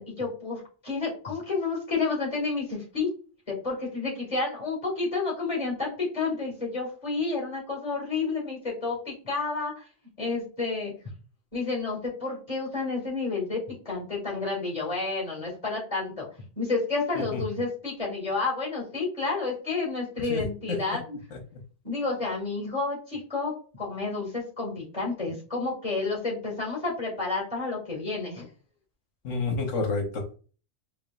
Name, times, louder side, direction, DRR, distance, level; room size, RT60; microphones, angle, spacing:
voice 1, 0.0-3.1 3.5-9.8 10.2-10.9 11.5-16.3 16.6-21.2 21.8-28.5, left 3 dB, 25° left, -3 dB, 2.1 m, -30 dB
voice 2, 20.3-20.8 21.3-21.4 29.2-30.3, left 3 dB, 70° left, 3 dB, 1.3 m, -29 dB
4.7 x 3.4 x 2.4 m, 0.38 s
omnidirectional pair, 1.4 m